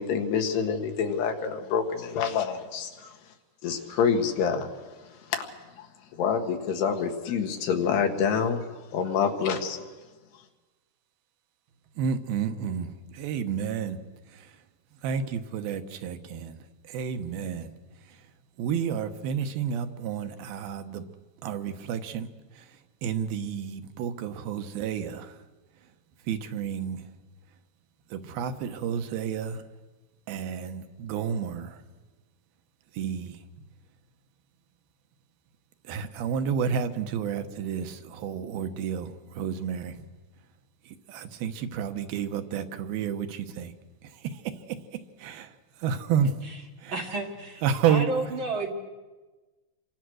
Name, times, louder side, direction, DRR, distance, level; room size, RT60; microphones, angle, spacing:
voice 1, 0.0-3.2 3.6-4.7 5.3-5.4 5.8-5.9 6.1-8.6 8.9-9.9, left 6 dB, 80° left, 3.9 m, -27 dB
voice 2, 12.0-14.0 14.3-14.6 14.9-16.6 16.8-17.7 18.0-18.3 18.6-21.1 21.4-25.4 26.2-27.1 28.1-29.6 30.3-31.8 32.9-33.7 35.8-40.1 40.8-43.7 44.0-46.4 46.8-47.0 47.6-48.1, right 7 dB, 70° right, 2.9 m, -31 dB
voice 3, 46.9-47.6 47.9-48.7, right 3 dB, 50° right, 1.5 m, -31 dB
28.5 x 24.0 x 6.4 m
omnidirectional pair, 4.7 m